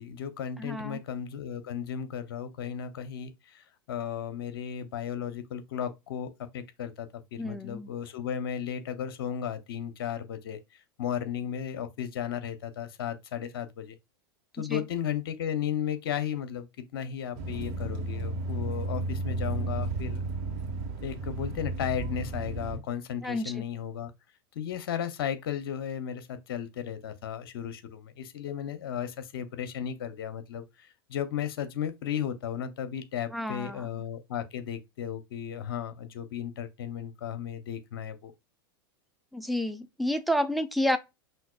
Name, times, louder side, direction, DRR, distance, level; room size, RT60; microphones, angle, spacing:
voice 1, 0.0-14.0 14.5-20.2 21.0-24.1 24.5-38.3, left 9 dB, 70° left, 0.8 m, -35 dB
voice 2, 0.6-1.0 7.4-7.9 14.6-14.8 23.2-23.6 33.3-34.0 39.3-41.0, equal, ahead, 0.6 m, -30 dB
sound 1, 17.4-22.8, right 2 dB, 55° right, 1.3 m, -33 dB
5.7 x 2.6 x 2.4 m
hypercardioid pair, 95°, 13 cm